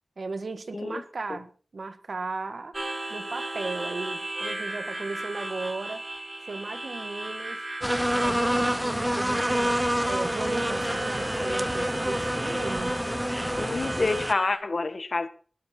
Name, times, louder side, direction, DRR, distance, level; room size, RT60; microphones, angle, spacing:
voice 1, 0.2-2.8 3.1-6.0 6.4-7.7 8.2-9.7 10.0-13.0, right 3 dB, 75° right, 1.6 m, -36 dB
Harmonica, 2.7-14.6, right 2 dB, 35° right, 4.1 m, -36 dB
sound 1, 7.8-14.3, equal, 5° right, 0.7 m, -27 dB
voice 2, 13.6-15.3, left 3 dB, 60° left, 1.5 m, -28 dB
20.0 x 9.9 x 4.4 m
wide cardioid pair, 50°, 0 cm